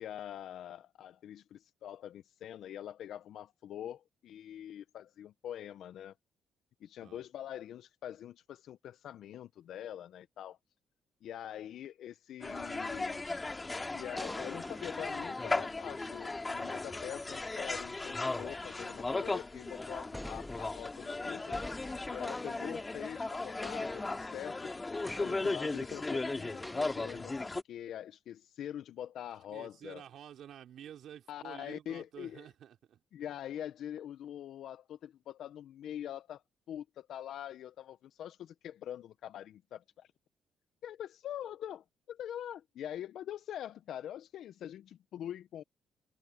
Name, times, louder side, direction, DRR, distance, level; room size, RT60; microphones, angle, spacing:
voice 1, 0.0-6.1 6.8-10.6 11.2-13.4 13.9-21.6 22.1-24.7 25.1-27.3 27.7-30.0 31.3-32.5 33.1-36.4 36.7-40.1 40.8-45.6, left 10 dB, 75° left, 0.6 m, -44 dB
sound 1, 12.4-27.6, left 3 dB, 20° left, 2.1 m, -37 dB
sound 2, 13.4-15.9 17.3-17.5 18.3-19.3 19.8-23.3 23.6-24.7 25.0-26.0 26.6-27.1, left 1 dB, 5° left, 1.8 m, -49 dB
voice 2, 29.5-33.0, right 10 dB, 70° right, 4.2 m, -50 dB
cardioid pair, 90°, 0 cm